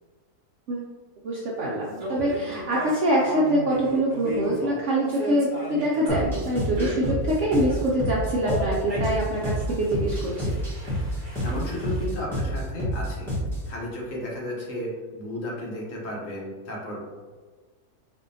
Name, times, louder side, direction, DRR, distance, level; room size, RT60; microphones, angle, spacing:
voice 1, 1.2-10.6, right 1 dB, 70° right, -4 dB, 0.7 m, -25 dB
sound 1, 2.0-7.9 8.4-12.0, equal, 40° right, 0.8 m, -34 dB
sound 2, 6.1-13.7, equal, ahead, 0.6 m, -29 dB
voice 2, 11.1-13.3 13.7-17.0, left 1 dB, 55° left, -4 dB, 1.1 m, -33 dB
4.2 x 2.7 x 2.6 m, 1.4 s
omnidirectional pair, 1.8 m